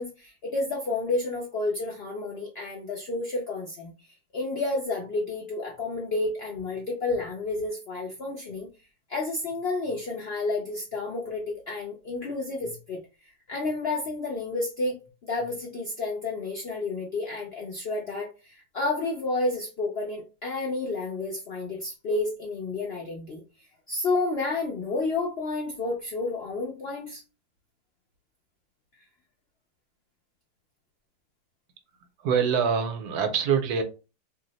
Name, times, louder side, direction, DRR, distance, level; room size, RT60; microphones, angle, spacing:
voice 1, 0.0-3.9 4.3-8.7 9.1-23.4 23.9-27.2, left 3 dB, 65° left, 0.6 m, -30 dB
voice 2, 32.2-33.8, right 7 dB, 75° right, 1.1 m, -24 dB
2.7 x 2.0 x 3.8 m
omnidirectional pair, 1.7 m